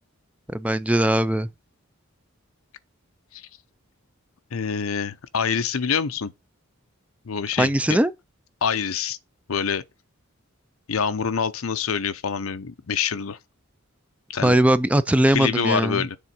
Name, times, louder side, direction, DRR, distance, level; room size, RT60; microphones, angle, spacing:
voice 1, 0.5-1.5 7.6-8.1 14.4-16.1, right 1 dB, 5° right, 0.3 m, -20 dB
voice 2, 4.5-6.3 7.2-8.0 8.6-9.2 9.5-9.8 10.9-13.4 14.3-14.6 15.3-16.2, left 6 dB, 85° left, 0.6 m, -26 dB
7.0 x 3.7 x 6.0 m
head